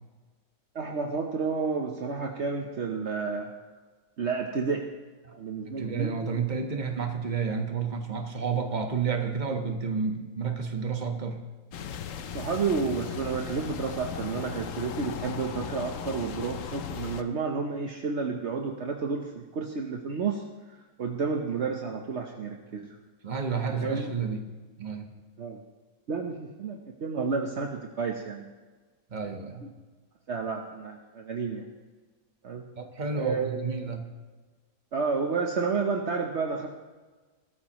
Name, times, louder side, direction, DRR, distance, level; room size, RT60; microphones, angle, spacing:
voice 1, 0.7-3.5 4.2-4.9 5.4-6.5 12.3-20.4 21.0-22.9 23.8-24.1 25.4-25.6 26.1-28.5 29.6-29.7 30.3-31.7 32.4-32.6 33.1-33.6 34.9-36.7, right 5 dB, 55° right, 2 dB, 1.2 m, -31 dB
voice 2, 5.6-11.4 23.2-24.4 24.8-25.1 29.1-29.6 32.8-34.0, right 5 dB, 35° right, 4 dB, 1.4 m, -30 dB
sound 1, 11.7-17.2, left 8 dB, 70° left, 1.1 m, -37 dB
20.0 x 13.5 x 3.1 m, 1.3 s
omnidirectional pair, 1.5 m